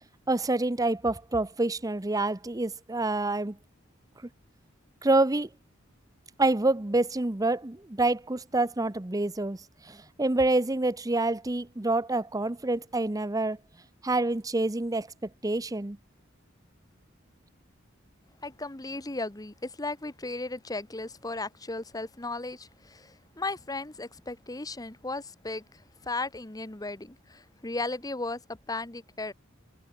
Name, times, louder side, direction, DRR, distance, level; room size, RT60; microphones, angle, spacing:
voice 1, 0.3-3.6 5.0-5.5 6.4-13.6 14.0-15.1 15.4-16.0, right 2 dB, 20° right, 0.7 m, -27 dB
voice 2, 18.4-25.6 26.0-28.4 28.7-29.3, left 2 dB, 20° left, 1.2 m, -35 dB
head